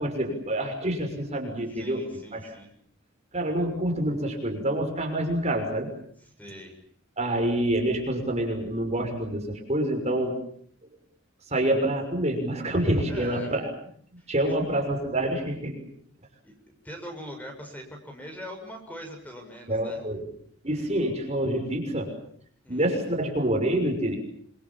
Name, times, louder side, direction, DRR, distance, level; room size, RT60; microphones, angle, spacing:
voice 1, 0.0-2.5 3.3-5.9 7.2-10.4 11.5-13.6 14.3-15.9 19.7-20.3 20.6-22.1 22.7-24.2, right 1 dB, 35° right, 3 dB, 6.3 m, -27 dB
voice 2, 1.7-2.7 6.4-6.8 13.0-13.5 14.2-14.5 16.4-16.5 16.8-20.0 20.8-20.9 22.6-22.9, equal, 10° left, 3 dB, 6.7 m, -42 dB
26.5 x 26.5 x 7.4 m, 0.63 s
head